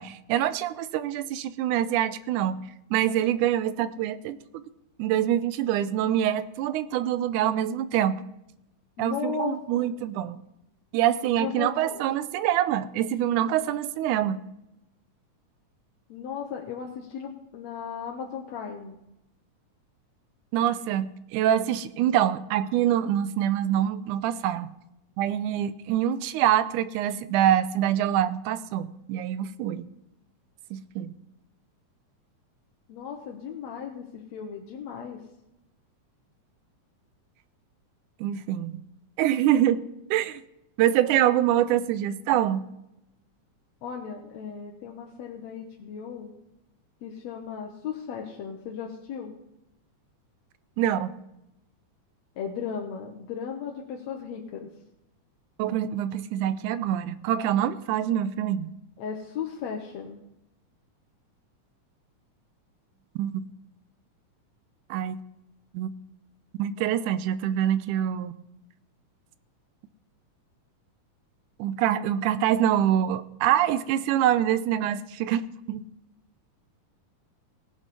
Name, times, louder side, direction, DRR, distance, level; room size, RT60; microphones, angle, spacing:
voice 1, 0.0-2.6 2.9-4.6 5.0-8.2 9.0-10.4 10.9-14.4 20.5-24.7 25.2-29.9 30.7-31.1 38.2-38.8 39.2-39.8 40.1-40.4 40.8-42.7 50.8-51.2 55.6-58.7 63.2-63.3 64.9-65.2 65.7-65.9 66.6-68.3 71.6-75.8, right 11 dB, 85° right, 15 dB, 2.1 m, -25 dB
voice 2, 9.0-9.9 11.4-12.0 16.1-19.0 32.9-35.2 43.8-46.3 47.0-49.3 52.4-54.7 59.0-60.2, left 7 dB, 65° left, 1 dB, 2.2 m, -36 dB
18.0 x 7.2 x 5.4 m, 0.86 s
omnidirectional pair, 3.5 m